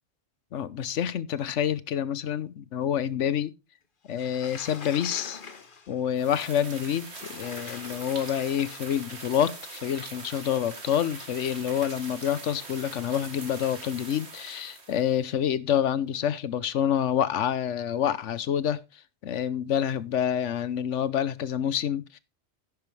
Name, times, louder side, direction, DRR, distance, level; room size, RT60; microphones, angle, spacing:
voice 1, 0.5-3.5 4.1-5.4 5.9-18.8 19.2-22.2, left 9 dB, 85° left, 1.1 m, -27 dB
Sliding door, 4.1-6.1 7.0-9.2, left 5 dB, 50° left, 1.2 m, -44 dB
sound 1, 6.2-15.2, right 3 dB, 65° right, 2.3 m, -43 dB
11.0 x 9.8 x 3.2 m
omnidirectional pair, 1.2 m